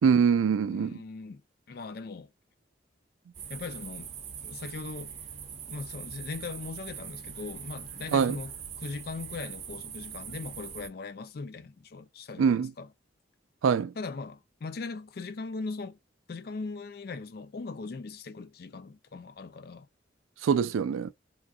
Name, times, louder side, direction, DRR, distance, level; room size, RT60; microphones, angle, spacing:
voice 1, 0.0-1.0 8.1-8.4 12.4-12.7 13.6-13.9 20.4-21.1, right 6 dB, 90° right, 0.3 m, -24 dB
voice 2, 0.7-1.4 1.7-2.3 3.5-4.1 4.4-5.1 5.7-12.9 14.0-16.0 16.3-19.9, left 4 dB, 50° left, 0.4 m, -39 dB
sound 1, 3.3-10.9, right 7 dB, 35° right, 0.7 m, -42 dB
3.7 x 2.3 x 2.3 m
head